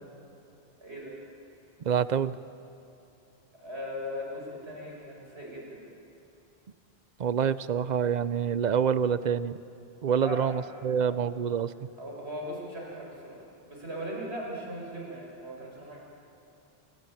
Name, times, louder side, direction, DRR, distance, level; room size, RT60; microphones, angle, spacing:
voice 1, 0.8-1.2 3.5-5.9 10.2-10.6 11.0-11.2 12.0-16.0, equal, 85° right, -3 dB, 6.4 m, -39 dB
voice 2, 1.8-2.4 7.2-9.6 10.0-11.9, right 7 dB, 50° right, 15 dB, 0.7 m, -27 dB
30.0 x 16.5 x 9.1 m, 2.7 s
omnidirectional pair, 1.1 m